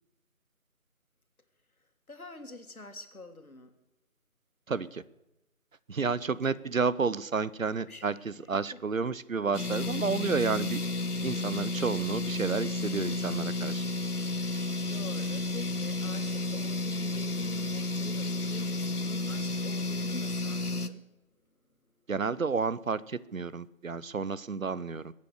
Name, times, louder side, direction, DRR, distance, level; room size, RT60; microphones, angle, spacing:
voice 1, 1.8-3.7 6.4-6.6 7.9-8.8 11.1-12.1 14.9-21.1 21.9-22.0, left 2 dB, 70° left, 7 dB, 2.1 m, -48 dB
voice 2, 4.7-5.0 5.9-10.8 11.2-13.8 22.1-25.1, right 5 dB, 65° right, 18 dB, 0.7 m, -31 dB
sound 1, 9.5-20.9, left 2 dB, 90° left, 1.1 m, -32 dB
22.5 x 8.5 x 6.6 m, 0.92 s
figure-of-eight pair, 170°, 44 cm